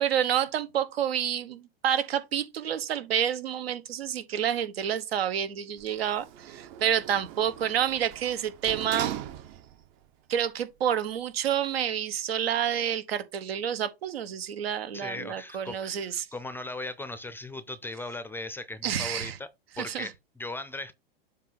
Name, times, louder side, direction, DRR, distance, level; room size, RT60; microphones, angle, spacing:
voice 1, 0.0-9.2 10.3-16.3 18.8-19.4 19.8-20.1, right 9 dB, 75° right, 1.2 m, -29 dB
Sliding door, 5.8-9.9 10.3-10.4, right 11 dB, 45° right, 0.8 m, -40 dB
voice 2, 14.9-19.5 19.8-20.9, left 2 dB, 5° left, 0.5 m, -38 dB
7.3 x 2.7 x 5.7 m
hypercardioid pair, 110°, 30 cm